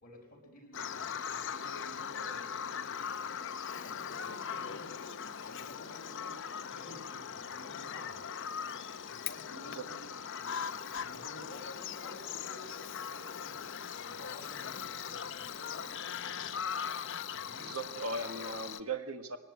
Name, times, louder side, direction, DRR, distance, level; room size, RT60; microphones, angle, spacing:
voice 1, 0.0-3.4 3.7-5.1 5.4-6.4 6.7-8.2 8.6-8.8 9.1-10.1 10.4-13.6 14.0-16.5 17.3-17.8, left 1 dB, 40° left, 0 dB, 5.3 m, -53 dB
Bird vocalization bird call bird song, 0.7-18.8, left 7 dB, 60° left, 0.8 m, -40 dB
voice 2, 9.6-9.9 17.6-19.4, right 3 dB, 75° right, 7 dB, 1.7 m, -38 dB
20.5 x 18.5 x 8.7 m, 1.2 s
head